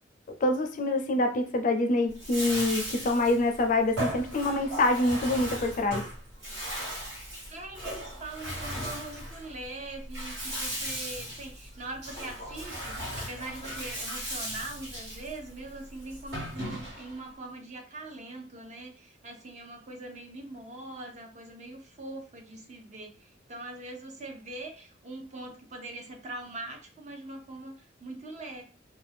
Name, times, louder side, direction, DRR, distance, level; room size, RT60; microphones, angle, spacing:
voice 1, 0.4-6.0, left 2 dB, 45° left, 0.4 m, -26 dB
Bathtub (filling or washing), 2.1-17.2, equal, 60° right, 1.4 m, -37 dB
voice 2, 7.5-28.6, right 2 dB, 40° right, 0.6 m, -42 dB
2.5 x 2.2 x 3.3 m
head